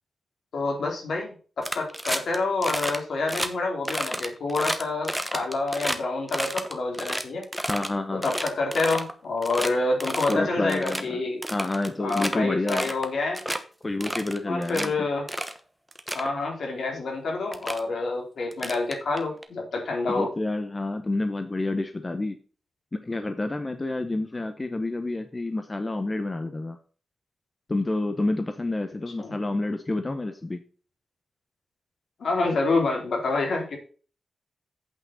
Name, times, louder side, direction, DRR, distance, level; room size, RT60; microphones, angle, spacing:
voice 1, 0.5-7.4 8.1-11.4 12.0-13.4 14.5-15.3 16.1-20.3 29.2-29.3 32.2-33.8, left 3 dB, 70° left, 1 dB, 3.1 m, -27 dB
sound 1, 1.6-2.4 2.6-3.0 3.3-3.5 3.8-6.0 6.3-7.9 8.2-9.1 9.4-9.7 10.0-10.4 10.7-11.0 11.4-12.4 12.7-13.1 13.3-13.6 14.0-14.9 15.3-15.6 15.9-16.3 17.1-17.2 17.5-17.8 18.5-19.4, equal, ahead, 1.0 m, -30 dB
voice 2, 7.6-8.2 10.3-11.2 11.5-12.9 13.8-14.9 20.1-22.4 22.9-26.8 27.7-30.6, left 2 dB, 25° left, 8 dB, 0.8 m, -29 dB
8.4 x 5.8 x 5.5 m, 0.39 s
wide cardioid pair, 130°, 0 cm